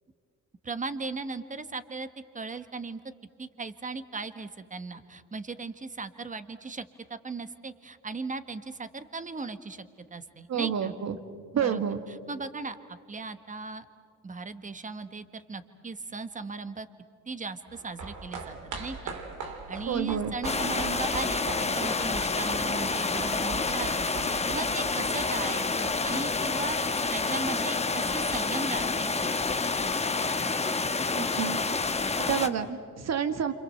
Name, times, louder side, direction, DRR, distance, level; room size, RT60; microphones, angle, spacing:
voice 1, 0.6-2.1 2.3-3.0 3.4-9.8 10.1-10.9 11.6-11.8 12.1-13.8 14.2-16.9 17.3-19.1 19.7-29.3, right 3 dB, 25° right, 11 dB, 1.5 m, -37 dB
voice 2, 10.5-11.2 11.6-12.0 19.9-20.3 31.1-31.6 32.2-33.5, right 8 dB, 60° right, 9 dB, 2.0 m, -29 dB
sound 1, 17.6-28.2 28.5-28.6, right 4 dB, 80° right, 3.4 m, -41 dB
sound 2, 20.4-32.5, left 4 dB, 20° left, 1.3 m, -28 dB
28.5 x 26.5 x 7.9 m, 2.1 s
cardioid pair, 90°, 30 cm